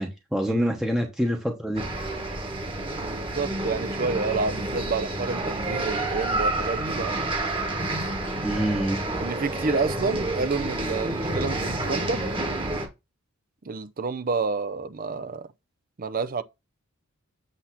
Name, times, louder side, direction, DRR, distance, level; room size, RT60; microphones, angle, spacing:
voice 1, 0.0-1.8 2.5-2.6 8.4-9.0, equal, ahead, 0.9 m, -26 dB
sound 1, 1.8-12.9, right 2 dB, 25° right, 1.3 m, -29 dB
voice 2, 3.0-7.2 9.2-12.2 13.6-15.5 16.0-16.4, right 4 dB, 40° right, 0.5 m, -29 dB
8.1 x 2.8 x 5.8 m
head